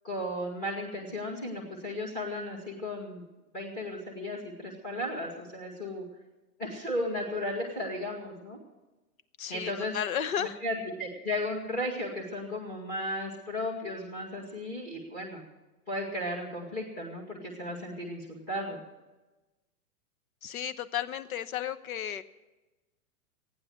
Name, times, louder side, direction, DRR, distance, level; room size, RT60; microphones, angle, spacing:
voice 1, 0.0-3.2 3.5-6.0 6.6-8.6 9.5-9.9 10.4-15.4 15.9-18.8, left 1 dB, 20° left, -2 dB, 2.0 m, -35 dB
voice 2, 9.4-10.6 20.4-22.2, left 9 dB, 65° left, 14 dB, 1.1 m, -33 dB
15.0 x 9.7 x 8.0 m, 1.1 s
hypercardioid pair, 175°, 44 cm